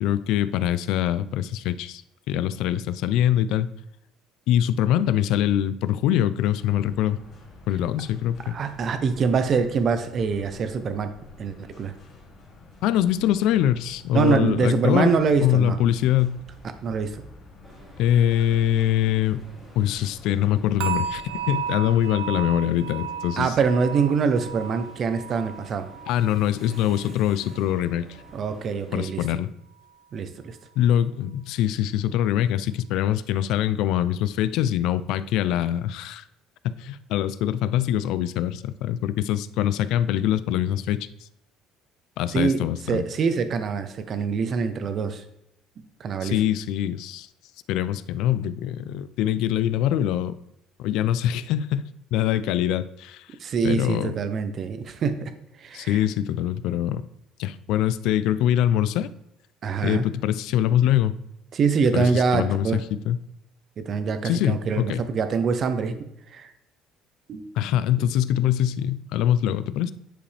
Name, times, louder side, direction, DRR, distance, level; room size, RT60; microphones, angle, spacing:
voice 1, 0.0-2.0 2.3-3.7 4.5-7.2 7.7-8.6 12.8-15.1 15.4-16.4 18.0-19.4 19.8-21.2 21.5-23.5 26.1-28.1 28.9-29.5 30.8-36.2 36.6-41.1 42.2-43.0 46.2-47.3 47.7-50.4 50.8-51.8 52.1-53.3 53.6-54.1 55.7-57.0 57.4-59.1 59.8-61.1 61.9-63.2 64.2-65.0 67.6-69.9, left 11 dB, 60° left, 15 dB, 0.3 m, -23 dB
sound 1, 6.5-22.1, left 2 dB, 35° left, 2.3 m, -49 dB
voice 2, 8.5-11.1 11.4-11.9 14.1-15.8 16.8-17.2 23.4-25.9 28.3-29.4 30.1-30.6 42.3-45.2 46.0-46.4 53.4-55.3 55.6-56.0 59.6-60.1 61.5-62.8 63.8-66.0 66.3-66.5 67.3-67.5 68.0-68.1, right 5 dB, 30° right, 9 dB, 0.6 m, -24 dB
sound 2, 17.6-29.0, right 1 dB, 10° right, 1.9 m, -50 dB
sound 3, 20.8-27.9 28.2-28.6 29.1-29.2, right 8 dB, 90° right, 0.8 m, -34 dB
9.9 x 5.0 x 3.3 m, 0.83 s
cardioid pair, 175°, 0 cm